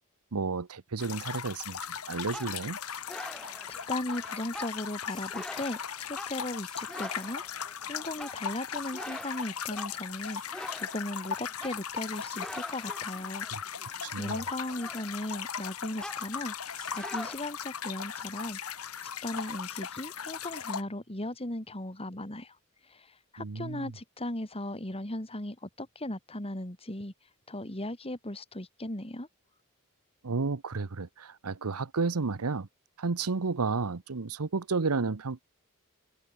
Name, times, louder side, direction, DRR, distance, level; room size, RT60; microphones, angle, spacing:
voice 1, 0.3-1.8 2.1-2.8 14.0-14.4 23.4-23.9 30.2-32.7 33.0-35.4, right 4 dB, 80° right, 0.9 m, -31 dB
sound 1, 1.0-20.8, left 7 dB, 75° left, 1.8 m, -38 dB
sound 2, 2.3-15.6 16.0-17.4, left 1 dB, 5° left, 1.2 m, -45 dB
voice 2, 3.4-7.4 7.8-18.6 19.2-22.6 22.9-27.1 27.5-29.3, left 1 dB, 25° left, 3.3 m, -37 dB
head